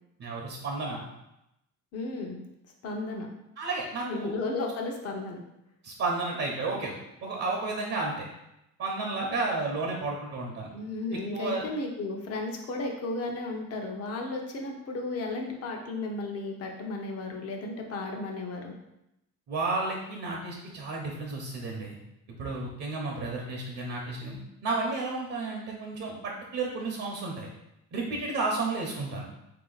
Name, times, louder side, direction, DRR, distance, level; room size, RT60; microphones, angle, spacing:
voice 1, 0.2-1.0 3.6-4.3 5.8-6.9 7.2-8.1 8.8-10.7 11.3-11.6 19.5-22.0 22.4-24.3 24.6-27.5 27.9-29.2, right 3 dB, 55° right, -1 dB, 0.8 m, -32 dB
voice 2, 1.9-2.4 2.8-3.3 4.0-5.4 10.7-18.8, left 2 dB, 50° left, 2 dB, 0.8 m, -34 dB
3.9 x 2.8 x 3.9 m, 0.86 s
cardioid pair, 140°, 31 cm